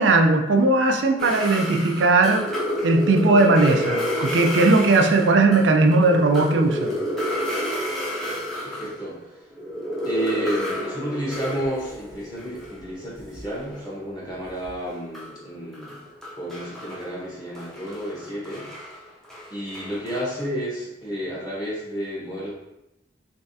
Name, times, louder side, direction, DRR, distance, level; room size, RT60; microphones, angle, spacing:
voice 1, 0.0-2.5 2.8-6.9, right 2 dB, 85° right, 4 dB, 0.5 m, -18 dB
sound 1, 1.2-9.1 9.4-14.1 14.3-20.4, equal, 5° left, 0.7 m, -30 dB
voice 2, 8.6-9.2 10.0-16.0 16.4-18.7 19.5-22.5, equal, 20° left, -7 dB, 1.2 m, -31 dB
3.4 x 3.2 x 2.7 m, 0.90 s
head